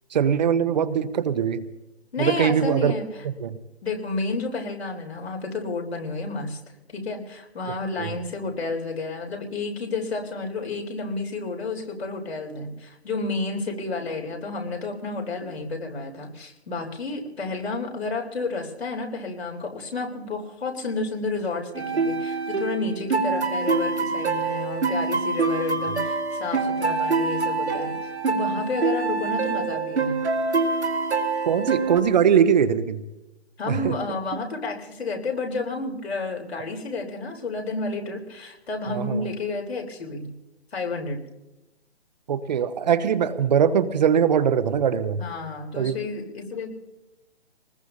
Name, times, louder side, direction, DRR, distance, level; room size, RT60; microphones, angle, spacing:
voice 1, 0.1-1.6 2.2-2.9 3.4-3.6 8.0-8.1 31.5-33.0 33.7-34.0 38.9-39.3 42.3-45.2 45.8-46.0, right 8 dB, 40° right, 11 dB, 0.9 m, -21 dB
voice 2, 2.1-3.1 3.8-6.6 6.9-27.9 28.3-30.2 33.6-40.3 40.7-41.2 45.2-46.7, left 3 dB, 70° left, 1 dB, 3.8 m, -31 dB
sound 1, 21.7-32.0, right 4 dB, 80° right, 2.3 m, -25 dB
24.5 x 20.0 x 2.8 m, 0.98 s
figure-of-eight pair, 145°, 33 cm